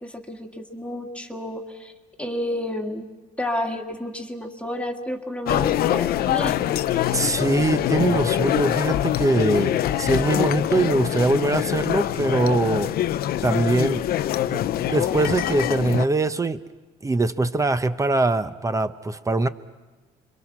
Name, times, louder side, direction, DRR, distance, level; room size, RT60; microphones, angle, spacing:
voice 1, 0.0-1.9 2.2-3.1 3.4-6.6, left 1 dB, 5° left, 3 dB, 1.8 m, -30 dB
sound 1, 5.5-16.1, left 12 dB, 65° left, 0.7 m, -24 dB
voice 2, 7.1-12.9 13.4-14.0 14.5-16.6 17.0-19.5, right 2 dB, 20° right, 12 dB, 0.8 m, -22 dB
27.5 x 23.5 x 6.1 m, 1.2 s
cardioid pair, 110°, 17 cm